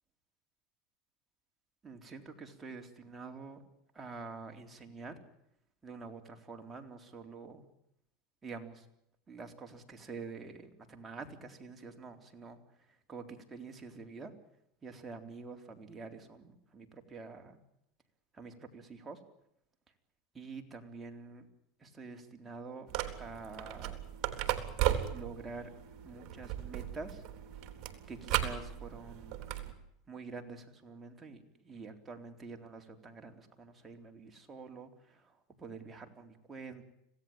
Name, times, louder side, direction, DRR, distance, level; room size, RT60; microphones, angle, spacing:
voice 1, 1.8-3.6 3.9-5.2 5.8-7.7 8.4-8.9 9.3-14.3 14.8-17.6 18.3-19.2 20.3-21.5 21.8-22.9 23.2-24.0 25.1-25.7 26.0-27.2 28.1-29.4 30.1-36.8, right 4 dB, 15° right, 4 dB, 3.8 m, -47 dB
sound 1, 22.9-29.7, right 12 dB, 50° right, 3.7 m, -36 dB
26.5 x 17.5 x 8.9 m, 0.78 s
supercardioid pair, 125°, 0 cm